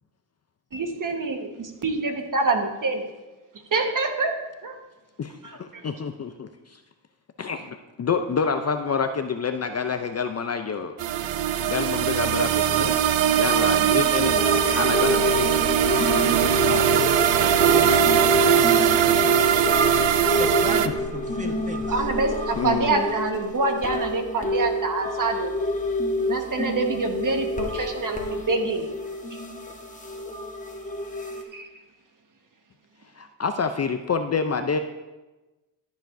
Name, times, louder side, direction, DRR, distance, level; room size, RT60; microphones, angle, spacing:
voice 1, 0.7-3.0 3.7-4.3 4.6-4.7 5.4-5.9 21.9-25.5 26.3-28.8 31.5-31.6, right 3 dB, 45° right, 4 dB, 1.4 m, -26 dB
voice 2, 5.2-6.8 7.4-10.9 11.6-12.9 13.4-15.7 15.9-16.1 18.3-18.4 22.6-23.1 33.2-34.8, left 5 dB, 35° left, 7 dB, 0.5 m, -28 dB
sound 1, 11.0-20.9, right 10 dB, 75° right, 0.6 m, -21 dB
sound 2, 14.1-31.4, left 1 dB, 15° left, 1.4 m, -27 dB
voice 3, 16.6-17.1 17.3-20.0 20.4-22.0, right 2 dB, 15° right, 3 dB, 1.3 m, -36 dB
12.5 x 7.1 x 2.6 m, 1.1 s
cardioid pair, 75°, 46 cm